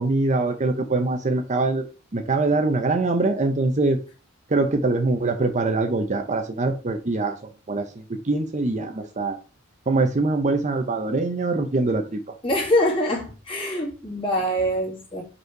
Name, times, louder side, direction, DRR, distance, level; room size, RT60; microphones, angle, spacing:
voice 1, 0.0-1.8 2.1-4.0 4.5-7.4 7.7-9.4 9.9-12.2, right 3 dB, 35° right, 0.7 m, -23 dB
voice 2, 12.4-15.2, equal, 25° left, 2.2 m, -24 dB
5.3 x 4.2 x 4.5 m
head